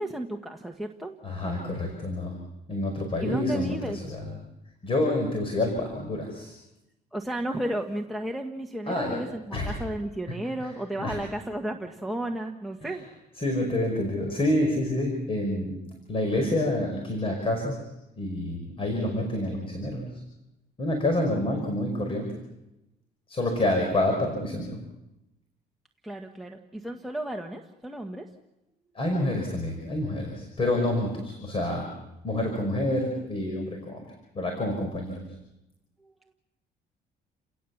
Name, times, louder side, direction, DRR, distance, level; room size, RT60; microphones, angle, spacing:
voice 1, 0.0-1.1 3.2-4.2 7.1-13.1 26.0-28.3, right 1 dB, ahead, 1 dB, 1.4 m, -33 dB
voice 2, 1.2-2.3 2.7-4.3 4.8-6.5 8.9-9.2 9.5-9.8 10.6-10.7 11.0-11.2 12.8-13.0 13.4-15.8 16.1-20.2 20.8-22.3 23.3-24.8 29.0-31.9 32.2-34.0 34.3-35.2, left 1 dB, 35° left, 3 dB, 5.4 m, -28 dB
30.0 x 18.0 x 7.3 m, 0.93 s
cardioid pair, 110°, 17 cm